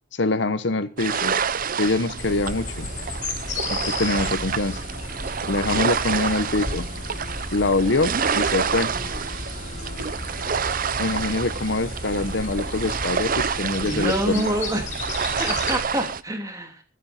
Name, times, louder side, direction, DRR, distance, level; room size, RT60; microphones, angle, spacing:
voice 1, 0.1-1.4 1.8-2.9 3.7-4.8 5.5-6.9 7.5-8.9 11.0-14.5, left 2 dB, 60° left, 1.0 m, -24 dB
sound 1, 1.0-16.2, right 6 dB, 45° right, 0.7 m, -28 dB
sound 2, 2.2-15.8, left 2 dB, 40° left, 4.8 m, -33 dB
voice 2, 13.8-14.8 15.4-16.8, right 1 dB, 15° right, 2.9 m, -26 dB
23.0 x 9.2 x 4.3 m
head